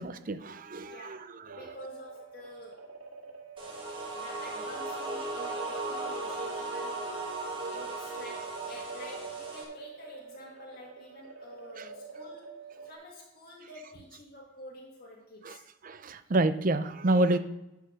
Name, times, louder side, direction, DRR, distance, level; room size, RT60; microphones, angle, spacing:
voice 1, 0.0-1.2 1.5-1.6 15.4-15.6 15.8-17.4, right 2 dB, 45° right, 11 dB, 0.6 m, -28 dB
voice 2, 0.9-2.9 4.1-7.2 7.7-15.6 17.2-17.4, left 1 dB, 50° left, -3 dB, 1.7 m, -49 dB
sound 1, 1.5-12.9, right 4 dB, 80° right, 2.1 m, -47 dB
sound 2, 3.6-9.6, right 2 dB, 25° right, 1.7 m, -36 dB
10.5 x 4.6 x 6.4 m, 0.93 s
head